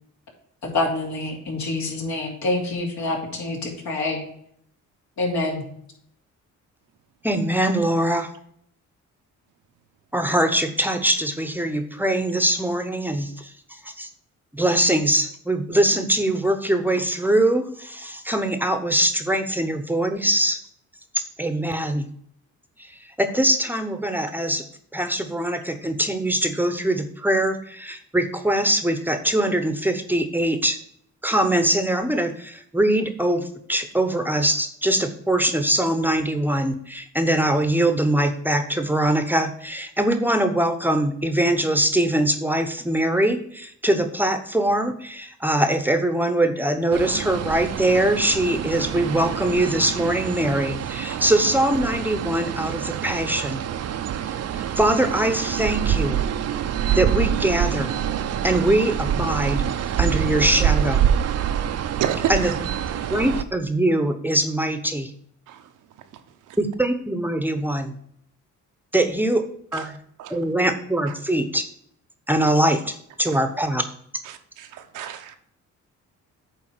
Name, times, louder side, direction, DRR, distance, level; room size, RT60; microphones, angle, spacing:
voice 1, 0.6-4.2 5.2-5.6, left 2 dB, 70° left, 2.9 m, -26 dB
voice 2, 7.2-8.3 10.1-14.1 14.5-20.6 21.4-22.1 22.8-22.9 23.2-24.6 24.9-30.8 31.2-53.6 54.5-56.2 57.0-58.0 58.4-59.7 60.0-61.1 62.3-62.5 63.1-65.1 66.6-68.0 68.9-69.5 69.7-69.9 70.3-71.6 72.3-73.8, right 1 dB, 5° right, 0.9 m, -22 dB
sound 1, 46.9-63.4, right 9 dB, 55° right, 0.7 m, -26 dB
voice 3, 62.0-62.6 65.5-65.7 66.1-66.2 66.5-66.6 69.7-69.9 70.2-70.4 71.1-71.2 73.3-73.4 74.2-75.4, right 10 dB, 85° right, 1.0 m, -30 dB
9.1 x 3.5 x 6.1 m
cardioid pair, 90°, 30 cm